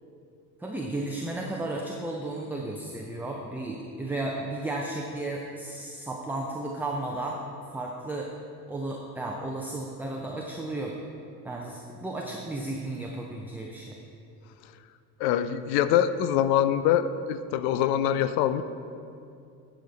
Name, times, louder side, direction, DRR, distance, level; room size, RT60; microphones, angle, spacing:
voice 1, 0.6-7.4 7.7-8.3 8.7-11.0 11.4-14.0, right 2 dB, 5° right, -1 dB, 0.6 m, -34 dB
voice 2, 15.2-18.6, left 10 dB, 55° left, 12 dB, 0.6 m, -24 dB
11.0 x 5.0 x 4.0 m, 2.5 s
hypercardioid pair, 65°, 48 cm